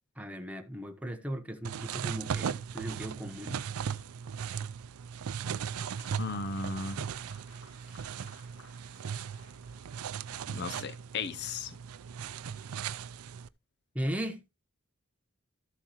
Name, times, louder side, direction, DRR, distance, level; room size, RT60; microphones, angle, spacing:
voice 1, 0.2-3.6 13.9-14.4, equal, 5° right, 0.9 m, -37 dB
sound 1, 1.6-13.5, right 7 dB, 90° right, 0.4 m, -38 dB
Applause, 5.0-10.3, left 1 dB, 85° left, 5.2 m, -59 dB
voice 2, 6.2-7.0 10.5-11.7, left 4 dB, 50° left, 0.5 m, -35 dB
13.0 x 7.3 x 3.0 m
head